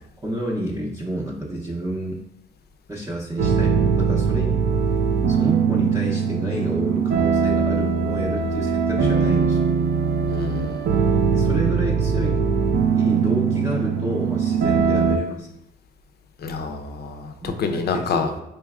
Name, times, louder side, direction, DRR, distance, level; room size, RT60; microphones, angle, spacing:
voice 1, 0.2-2.2 2.9-4.6 5.3-9.6 11.3-12.4 13.0-15.5 17.4-18.4, right 1 dB, 15° right, -4 dB, 0.7 m, -29 dB
sound 1, 3.4-15.2, right 6 dB, 60° right, 0.5 m, -21 dB
voice 2, 10.3-10.9 16.4-18.3, left 5 dB, 55° left, 6 dB, 0.5 m, -27 dB
4.5 x 3.0 x 2.4 m, 0.85 s
cardioid pair, 90°, 20 cm